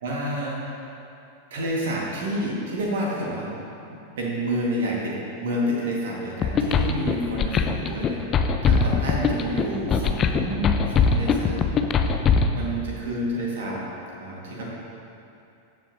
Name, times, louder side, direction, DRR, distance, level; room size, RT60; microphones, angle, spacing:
voice 1, 0.0-0.7 1.5-3.5 3.9-12.2 12.5-13.8 14.2-14.6, equal, 60° right, -3 dB, 1.7 m, -29 dB
sound 1, 6.4-12.5, left 5 dB, 30° left, 0.5 m, -21 dB
13.5 x 7.3 x 2.7 m, 2.7 s
figure-of-eight pair, 90°, 0 cm